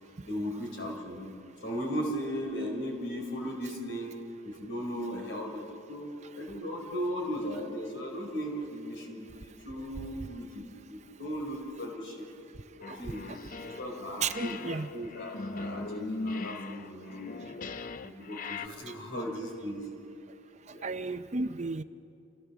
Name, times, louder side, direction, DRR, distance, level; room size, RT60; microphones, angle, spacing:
voice 1, 0.3-1.3 1.6-4.2 4.4-10.6 10.9-12.3 12.8-13.3 13.6-17.5 18.0-19.9 20.7-20.9, equal, 60° left, 1 dB, 4.3 m, -37 dB
sound 1, 12.8-14.0 14.3-18.7, left 3 dB, 40° left, 0.5 m, -39 dB
voice 2, 12.9-13.4 13.7-13.8 14.2-14.9 18.9-19.0 20.7-21.8, right 4 dB, 35° right, 10 dB, 0.6 m, -34 dB
28.0 x 16.5 x 7.2 m, 2.7 s
head